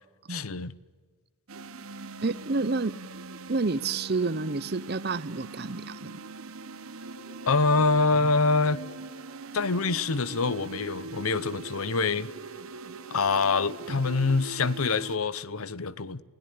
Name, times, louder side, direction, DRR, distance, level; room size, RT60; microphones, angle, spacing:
voice 1, 0.3-0.7 7.5-8.8 9.5-12.3 13.1-16.2, left 4 dB, 85° left, 0.9 m, -25 dB
sound 1, 1.5-15.2, right 3 dB, 80° right, 1.1 m, -42 dB
voice 2, 2.2-2.9 3.5-6.1, right 3 dB, 45° right, 0.7 m, -29 dB
sound 2, 7.0-15.5, left 4 dB, 60° left, 5.1 m, -56 dB
29.5 x 17.0 x 9.5 m
head